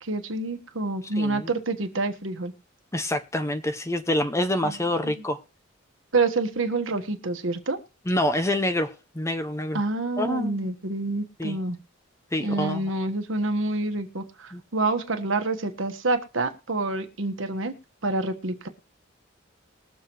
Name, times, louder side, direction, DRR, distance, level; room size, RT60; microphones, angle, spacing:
voice 1, 0.0-2.5 4.6-5.1 6.1-7.8 9.7-11.8 12.4-17.7 18.0-18.7, right 3 dB, 75° right, 1.4 m, -27 dB
voice 2, 1.2-1.5 2.9-5.4 8.1-9.8 10.2-10.7 11.4-11.6 12.3-12.8 14.5-14.6, left 1 dB, 15° left, 0.7 m, -27 dB
21.0 x 7.1 x 3.0 m
head